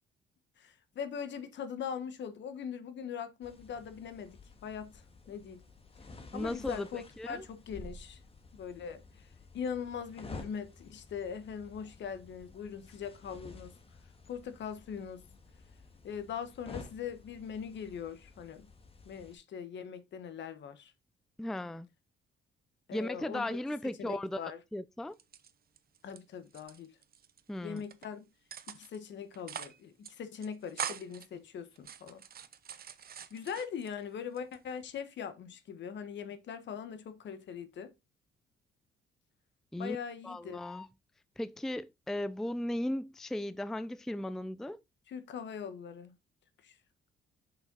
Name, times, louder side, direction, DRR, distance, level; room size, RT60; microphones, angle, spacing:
voice 1, 0.6-5.6 6.3-8.2 8.5-9.3 9.5-13.7 14.3-15.2 16.0-18.7 19.0-20.9 22.9-23.6 24.0-24.6 26.0-26.9 27.6-28.2 28.7-32.2 33.3-37.9 39.8-40.6 45.1-46.1 46.6-46.8, left 7 dB, 65° left, 1.3 m, -41 dB
sound 1, 3.4-19.4, left 3 dB, 30° left, 1.7 m, -52 dB
voice 2, 6.3-7.4 21.4-21.9 22.9-25.1 27.5-27.8 39.7-40.0 40.2-40.9 41.4-44.8, left 1 dB, ahead, 0.4 m, -36 dB
sound 2, 25.1-26.2 26.5-27.4 27.8-28.1 28.5-29.0 29.3-29.8 30.0-30.1 30.4-31.3 31.8-33.9 34.4-35.0, right 8 dB, 50° right, 0.9 m, -43 dB
6.3 x 5.8 x 3.9 m
cardioid pair, 90°, 20 cm